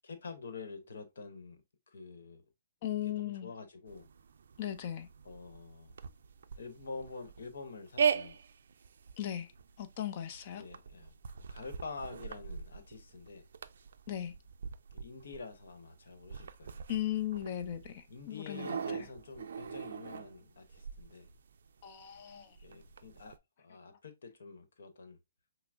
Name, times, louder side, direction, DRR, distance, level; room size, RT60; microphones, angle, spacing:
voice 1, 0.0-1.6 1.9-2.4 3.0-4.1 5.2-6.0 6.6-8.4 10.5-11.1 11.5-13.5 14.9-16.8 18.1-21.3 22.6-25.2, left 4 dB, 75° left, 1.0 m, -47 dB
voice 2, 2.8-3.5 4.6-5.1 9.2-9.5 9.8-10.6 14.1-14.3 16.9-18.8 21.8-22.6, left 11 dB, 40° left, 0.6 m, -37 dB
sound 1, 3.9-23.4, right 7 dB, 70° right, 0.4 m, -41 dB
5.7 x 2.0 x 2.5 m
hypercardioid pair, 150°, 0 cm